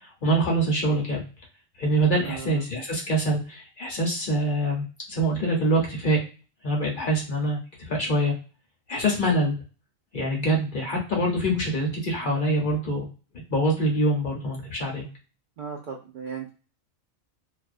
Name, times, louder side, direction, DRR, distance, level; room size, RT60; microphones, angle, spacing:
voice 1, 0.2-1.2 1.8-6.2 6.6-7.6 7.9-8.3 8.9-9.6 10.1-13.1 13.5-15.0, right 1 dB, 45° left, -1 dB, 0.7 m, -24 dB
voice 2, 2.2-2.6 15.6-16.5, right 7 dB, 70° right, 0 dB, 0.4 m, -36 dB
2.4 x 2.1 x 2.4 m, 0.35 s
omnidirectional pair, 1.4 m